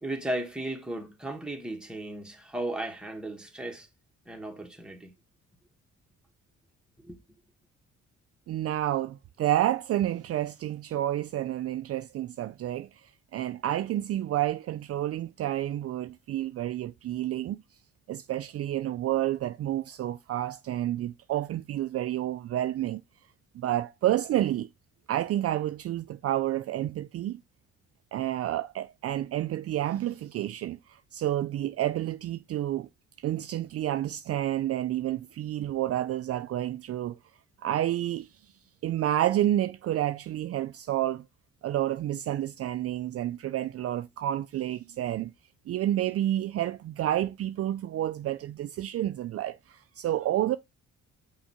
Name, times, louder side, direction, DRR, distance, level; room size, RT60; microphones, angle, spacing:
voice 1, 0.0-3.9 4.3-5.1 7.0-7.2, right 1 dB, 5° right, 1.8 m, -35 dB
voice 2, 8.5-17.6 18.1-23.0 23.5-24.7 25.1-27.4 28.1-32.9 33.2-37.2 37.6-38.3 38.8-41.2 41.6-45.3 45.7-50.6, right 13 dB, 50° right, 0.4 m, -29 dB
5.7 x 4.6 x 4.2 m
cardioid pair, 90°, 30 cm